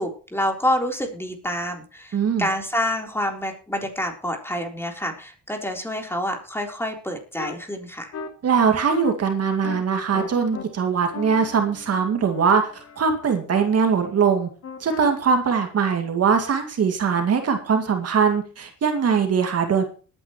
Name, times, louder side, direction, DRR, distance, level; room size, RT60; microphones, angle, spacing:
voice 1, 0.0-8.1, equal, 10° left, 3 dB, 3.8 m, -27 dB
voice 2, 2.1-2.5 8.4-14.5 14.8-19.8, right 6 dB, 55° right, 5 dB, 2.3 m, -21 dB
sound 1, 7.4-7.5 8.1-8.3 8.9-9.1 9.6-9.8 10.1-10.6 11.1-13.4 14.6-15.1, left 6 dB, 55° left, 2.7 m, -37 dB
20.5 x 9.9 x 3.1 m, 0.37 s
cardioid pair, 90°, 30 cm